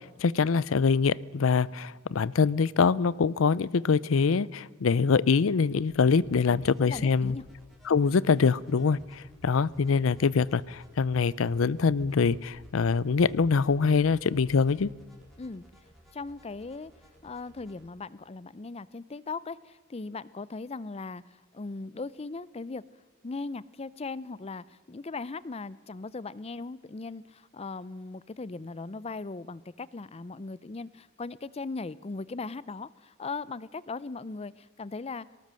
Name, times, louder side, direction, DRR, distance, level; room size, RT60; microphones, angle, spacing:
voice 1, 0.2-7.4 7.9-14.9, left 5 dB, 75° left, 22 dB, 0.5 m, -24 dB
sound 1, 5.9-17.8, equal, ahead, 4.5 m, -55 dB
voice 2, 6.5-7.5 15.4-15.6 16.1-16.9 17.2-22.8 23.2-35.3, left 3 dB, 30° left, 19 dB, 0.5 m, -38 dB
19.0 x 18.0 x 7.6 m, 1.5 s
head